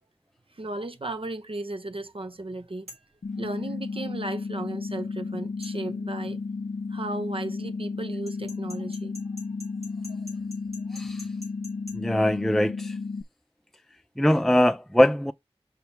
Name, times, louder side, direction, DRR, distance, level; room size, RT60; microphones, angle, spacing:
voice 1, 0.6-2.9 3.4-6.4 6.9-9.1 10.1-10.2 10.9-11.0, right 2 dB, 60° right, 0.9 m, -35 dB
sound 1, 2.9-3.1 5.6-5.8 8.3-12.0, left 1 dB, 80° right, 3.8 m, -45 dB
sound 2, 3.2-13.2, left 4 dB, 85° left, 0.7 m, -33 dB
voice 2, 10.9-11.3 11.9-13.0 14.2-15.3, equal, ahead, 0.4 m, -22 dB
5.7 x 3.4 x 5.6 m
wide cardioid pair, 55°, 11 cm